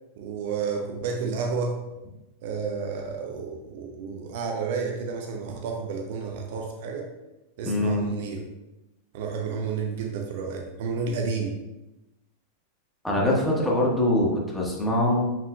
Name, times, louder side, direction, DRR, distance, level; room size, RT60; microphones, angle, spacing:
voice 1, 0.2-1.8 2.4-7.1 7.6-8.4 9.1-11.5, right 5 dB, 50° right, 1 dB, 0.8 m, -31 dB
voice 2, 7.6-8.1 13.0-15.3, left 1 dB, 5° left, -4 dB, 1.6 m, -23 dB
7.1 x 5.9 x 2.4 m, 0.98 s
figure-of-eight pair, 90°, 0 cm